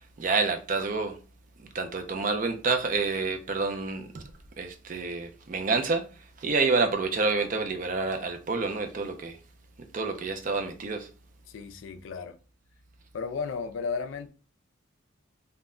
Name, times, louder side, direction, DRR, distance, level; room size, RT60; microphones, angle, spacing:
voice 1, 0.2-1.2 1.6-6.1 6.4-9.4 9.8-11.1, right 4 dB, 40° right, 0.4 m, -28 dB
voice 2, 11.5-12.4 13.1-14.3, left 5 dB, 70° left, 0.3 m, -34 dB
2.1 x 2.1 x 3.5 m
head